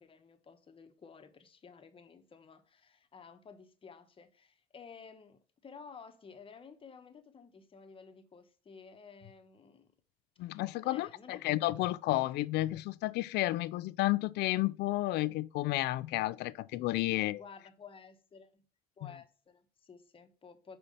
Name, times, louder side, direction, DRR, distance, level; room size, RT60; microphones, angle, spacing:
voice 1, 0.0-9.9 10.8-11.8 17.1-18.6 19.0-20.8, left 5 dB, 30° left, 1.1 m, -54 dB
voice 2, 10.4-17.4 19.0-19.1, left 17 dB, 80° left, 0.4 m, -32 dB
5.5 x 4.3 x 5.1 m
cardioid pair, 110°, 17 cm